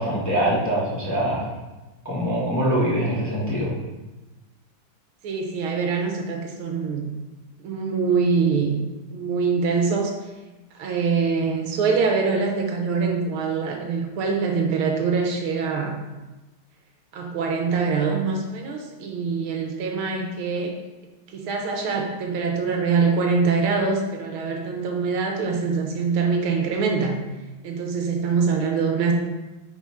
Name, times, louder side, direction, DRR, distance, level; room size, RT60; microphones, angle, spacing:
voice 1, 0.0-1.5 2.0-3.7, equal, 10° left, -8 dB, 1.1 m, -23 dB
voice 2, 5.2-7.0 7.6-8.8 9.1-10.1 10.7-15.9 17.1-20.7 21.3-27.2 27.6-29.1, right 5 dB, 75° right, 2 dB, 1.6 m, -24 dB
5.6 x 3.7 x 4.8 m, 1.1 s
omnidirectional pair, 2.4 m